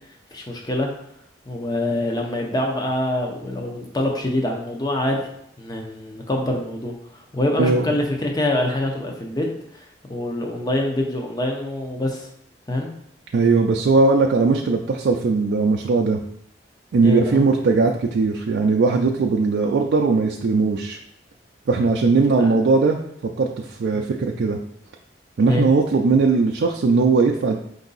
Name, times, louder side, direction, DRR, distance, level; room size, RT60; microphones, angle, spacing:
voice 1, 0.3-0.9 1.5-5.3 5.6-9.5 9.7-12.3 12.7-12.9 17.0-17.4 22.4-22.5 23.9-24.0 25.4-25.7, left 1 dB, 20° left, 1 dB, 0.6 m, -25 dB
voice 2, 13.3-16.2 16.9-21.0 21.7-23.0 23.4-24.6 25.4-27.6, right 4 dB, 70° right, 1 dB, 0.4 m, -19 dB
4.6 x 2.6 x 4.0 m, 0.74 s
head